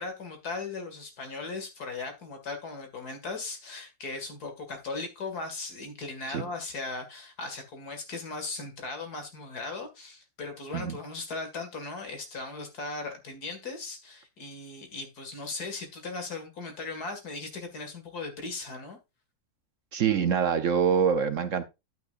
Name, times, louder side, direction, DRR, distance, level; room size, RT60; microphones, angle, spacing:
voice 1, 0.0-19.0, left 3 dB, 70° left, 2.5 m, -38 dB
voice 2, 19.9-21.6, right 7 dB, 60° right, 1.0 m, -25 dB
10.5 x 9.1 x 2.5 m
omnidirectional pair, 1.7 m